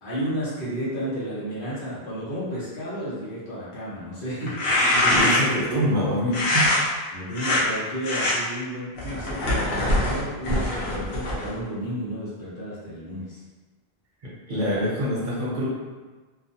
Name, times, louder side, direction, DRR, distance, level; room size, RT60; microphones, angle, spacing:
voice 1, 0.0-5.2 7.1-13.4, equal, 60° left, -9 dB, 1.1 m, -32 dB
sound 1, 4.4-5.6 6.3-6.8 7.3-7.6 8.0-8.3 9.0-11.6, left 1 dB, 85° left, 1.0 m, -23 dB
voice 2, 5.1-6.7 14.5-15.7, equal, 55° right, -7 dB, 0.8 m, -25 dB
2.4 x 2.4 x 2.7 m, 1.3 s
omnidirectional pair, 1.0 m